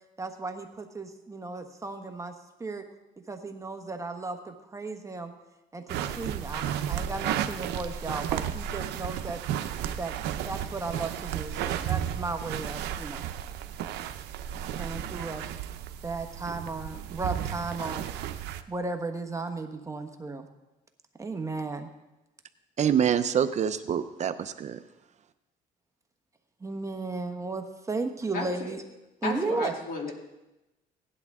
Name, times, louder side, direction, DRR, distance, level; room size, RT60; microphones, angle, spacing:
voice 1, 0.2-2.3 2.6-2.8 3.3-5.3 5.7-9.4 10.0-13.3 14.8-15.5 16.0-18.0 18.7-20.5 21.2-21.9 26.6-28.8 29.2-29.7, right 3 dB, 20° right, 5 dB, 1.1 m, -35 dB
sound 1, 5.9-18.6, right 10 dB, 85° right, 0.7 m, -33 dB
voice 2, 22.8-24.8, right 8 dB, 45° right, 10 dB, 0.6 m, -26 dB
voice 3, 28.3-28.7 29.2-30.1, left 3 dB, 55° left, 0 dB, 2.9 m, -33 dB
17.5 x 11.0 x 3.6 m, 0.99 s
cardioid pair, 110°, 17 cm